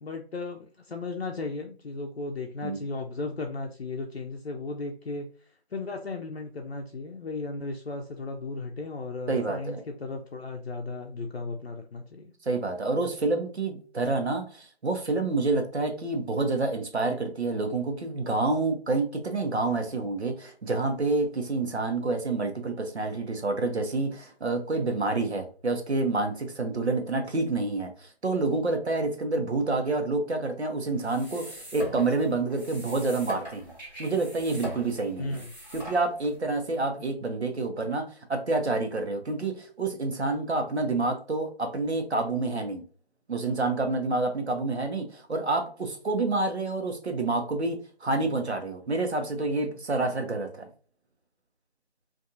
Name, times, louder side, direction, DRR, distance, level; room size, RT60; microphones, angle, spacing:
voice 1, 0.0-5.3 5.7-12.3 35.2-35.5, left 3 dB, 70° left, 2 dB, 0.5 m, -35 dB
voice 2, 9.3-9.8 12.4-33.7 34.0-35.4 35.7-42.8 43.3-50.7, right 3 dB, 90° right, 5 dB, 0.9 m, -28 dB
sound 1, 30.9-36.4, right 1 dB, 40° right, 1.4 m, -41 dB
2.8 x 2.5 x 2.4 m, 0.40 s
figure-of-eight pair, 175°, 32 cm